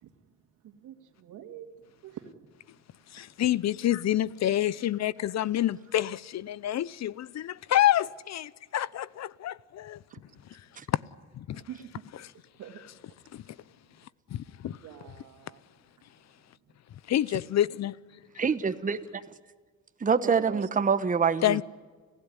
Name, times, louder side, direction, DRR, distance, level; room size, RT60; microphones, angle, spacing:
voice 1, 0.6-2.6 4.8-4.9 10.1-10.6 11.5-13.2 13.5-13.9 14.7-15.8 18.3-18.4 20.2-20.7, right 10 dB, 80° right, 2.5 m, -47 dB
voice 2, 3.1-10.0 10.9-11.0 11.3-11.6 13.3-13.4 14.3-14.8 17.1-18.0 21.4-21.6, left 12 dB, 60° left, 0.8 m, -27 dB
voice 3, 18.4-19.0 20.0-21.6, right 6 dB, 25° right, 1.1 m, -25 dB
29.5 x 15.5 x 9.8 m
cardioid pair, 90°, 30 cm